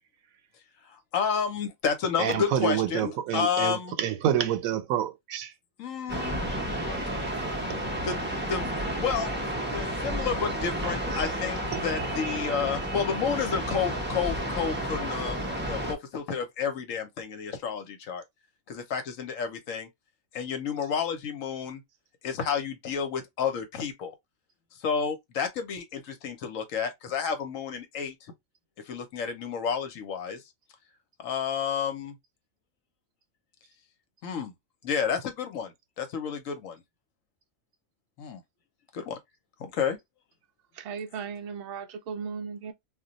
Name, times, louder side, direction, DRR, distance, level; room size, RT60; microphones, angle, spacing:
voice 1, 1.1-3.9 5.8-6.4 8.0-8.2 8.5-9.3 9.7-15.4 15.6-18.2 18.7-19.9 20.3-21.8 22.2-24.1 24.8-28.1 28.9-30.4 31.2-32.1 34.2-34.5 34.8-36.8 38.2-38.4 38.9-39.2 39.6-40.0, left 7 dB, 75° left, 1.1 m, -30 dB
voice 2, 2.2-5.5 7.7-7.8 11.7-11.8, right 10 dB, 90° right, 1.0 m, -28 dB
sound 1, 6.1-15.9, right 1 dB, 15° right, 0.4 m, -31 dB
voice 3, 40.8-42.7, right 6 dB, 60° right, 0.6 m, -36 dB
2.4 x 2.2 x 3.8 m
omnidirectional pair, 1.4 m